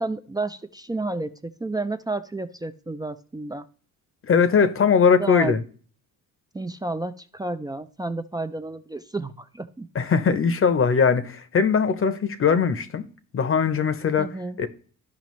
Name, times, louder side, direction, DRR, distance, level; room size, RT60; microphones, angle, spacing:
voice 1, 0.0-3.7 5.2-5.6 6.5-9.9 14.2-14.6, right 2 dB, 10° right, 0.3 m, -31 dB
voice 2, 4.2-5.6 9.9-13.1 13.3-14.7, left 6 dB, 35° left, 0.7 m, -20 dB
12.5 x 4.9 x 3.1 m
cardioid pair, 85°, 37 cm